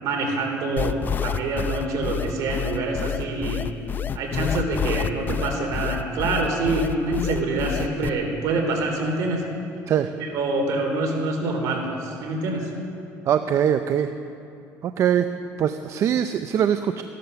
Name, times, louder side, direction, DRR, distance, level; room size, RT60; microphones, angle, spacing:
voice 1, 0.0-3.7 4.1-9.4 10.2-12.7, right 2 dB, 70° right, 2 dB, 3.3 m, -26 dB
sound 1, 0.8-8.1, left 8 dB, 30° left, 0.5 m, -28 dB
voice 2, 13.3-14.1 14.8-15.3 15.6-17.0, right 9 dB, 50° right, 9 dB, 0.6 m, -22 dB
15.5 x 11.5 x 6.8 m, 2.8 s
cardioid pair, 110°, 6 cm